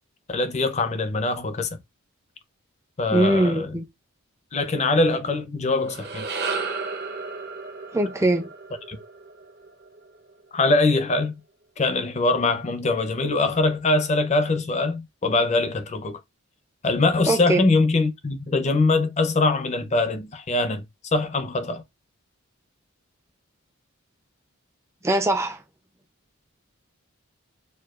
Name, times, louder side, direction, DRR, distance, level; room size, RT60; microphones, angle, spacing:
voice 1, 0.3-1.7 3.0-3.8 4.5-6.3 8.9-9.0 10.5-11.3 11.8-16.2 16.8-20.8 21.1-21.8, left 3 dB, 30° left, 0.6 m, -23 dB
voice 2, 3.1-3.8 7.9-8.5 17.3-17.6 25.0-25.6, right 1 dB, 15° right, 0.5 m, -21 dB
sound 1, 5.7-10.2, right 4 dB, 50° right, 0.7 m, -33 dB
6.6 x 2.3 x 2.4 m
head